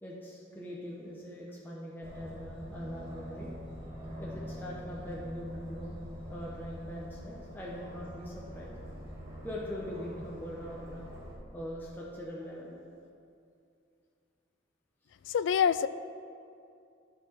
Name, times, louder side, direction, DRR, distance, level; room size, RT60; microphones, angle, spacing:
voice 1, 0.0-3.5 4.2-8.8 9.4-11.0 11.5-12.8, equal, 10° left, -5 dB, 0.9 m, -42 dB
Aircraft, 2.0-11.3, equal, 30° right, 2.1 m, -44 dB
voice 2, 15.3-15.9, left 7 dB, 65° left, 14 dB, 0.3 m, -25 dB
12.0 x 4.7 x 5.8 m, 2.5 s
head